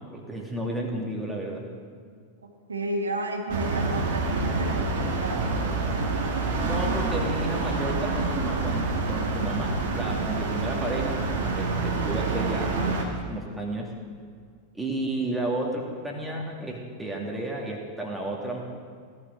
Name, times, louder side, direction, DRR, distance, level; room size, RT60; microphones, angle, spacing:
voice 1, 0.1-1.7 6.6-13.9 14.7-18.6, right 1 dB, 5° right, -1 dB, 2.3 m, -32 dB
voice 2, 2.4-5.5, right 2 dB, 75° right, 3 dB, 1.3 m, -32 dB
sound 1, 3.5-13.0, right 3 dB, 50° right, 1.8 m, -27 dB
17.5 x 12.0 x 4.0 m, 2.1 s
figure-of-eight pair, 90°, 0 cm